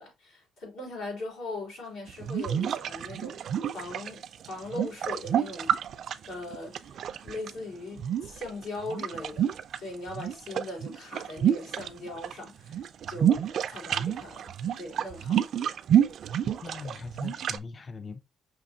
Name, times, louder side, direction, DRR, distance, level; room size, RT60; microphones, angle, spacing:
voice 1, 0.0-3.4 3.7-5.7 6.2-15.5, left 2 dB, 90° left, 3.1 m, -40 dB
sound 1, 2.1-7.5 8.0-9.8 10.1-12.3 12.6-17.6, right 9 dB, 55° right, 0.3 m, -29 dB
voice 2, 16.6-18.2, left 4 dB, 25° left, 0.3 m, -41 dB
5.8 x 2.8 x 2.7 m
cardioid pair, 165°, 0 cm